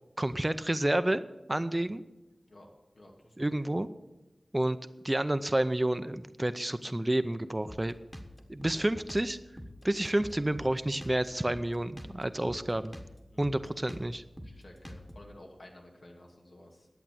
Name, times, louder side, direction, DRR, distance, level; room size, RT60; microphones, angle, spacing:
voice 1, 0.2-1.2 1.5-2.0 3.4-3.9 4.5-4.8 5.0-7.9 8.5-9.4 9.8-13.0 13.4-14.2, right 1 dB, 25° right, 12 dB, 0.6 m, -29 dB
voice 2, 2.9-3.4 13.3-13.8 14.4-16.9, left 1 dB, 80° left, 0 dB, 2.4 m, -53 dB
Drum kit, 7.7-15.3, equal, 10° left, 1.4 m, -46 dB
11.0 x 8.2 x 7.5 m, 0.99 s
wide cardioid pair, 60°, 0 cm